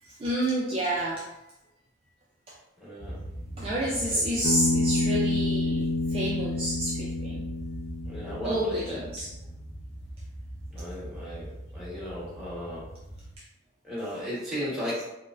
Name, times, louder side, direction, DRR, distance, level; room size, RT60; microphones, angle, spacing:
voice 1, 0.0-1.3 2.5-2.6 3.6-7.4 8.4-9.3, right 1 dB, 30° right, -5 dB, 0.3 m, -29 dB
voice 2, 2.8-3.1 4.1-4.2 8.1-9.0 10.7-12.8 13.8-15.0, equal, ahead, -10 dB, 1.1 m, -35 dB
sound 1, 3.0-13.4, right 1 dB, 35° left, 0.8 m, -41 dB
Bass guitar, 4.4-8.8, left 2 dB, 65° left, 0.4 m, -28 dB
4.4 x 2.0 x 2.4 m, 0.97 s
head